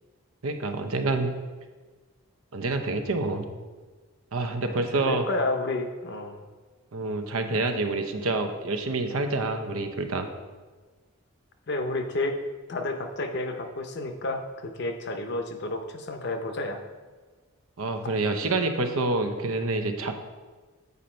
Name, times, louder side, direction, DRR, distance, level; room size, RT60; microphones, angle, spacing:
voice 1, 0.4-1.3 2.5-3.5 4.3-5.3 6.9-10.3 17.8-20.1, right 2 dB, 85° right, 6 dB, 0.8 m, -27 dB
voice 2, 4.7-6.4 11.7-12.4 12.7-16.8, left 2 dB, 55° left, 6 dB, 0.7 m, -31 dB
8.3 x 5.2 x 4.4 m, 1.4 s
head